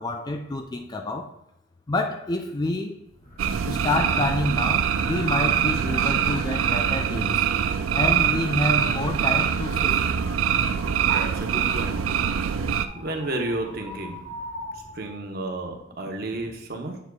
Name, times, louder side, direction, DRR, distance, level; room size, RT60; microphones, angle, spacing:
voice 1, 0.0-1.4 1.9-3.0 3.7-7.5 7.9-10.0, left 2 dB, 20° left, 0.3 m, -28 dB
sound 1, 3.1-15.2, equal, 40° left, 2.0 m, -42 dB
sound 2, 3.4-12.9, right 8 dB, 85° right, 0.4 m, -24 dB
voice 2, 11.1-12.1 12.5-14.2 14.7-17.0, right 2 dB, 50° right, 0.9 m, -32 dB
8.0 x 7.2 x 2.3 m
head